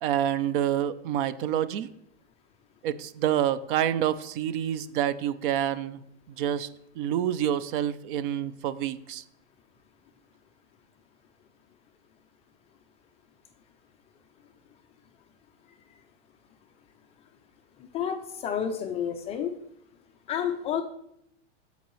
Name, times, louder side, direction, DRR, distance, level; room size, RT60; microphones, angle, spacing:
voice 1, 0.0-1.9 2.8-6.0 6.4-6.7 7.0-9.2, right 10 dB, 50° right, 15 dB, 0.5 m, -27 dB
voice 2, 17.9-19.5 20.3-20.8, left 8 dB, 20° left, 5 dB, 0.4 m, -30 dB
14.0 x 5.3 x 3.1 m, 0.76 s
supercardioid pair, 145°, 35 cm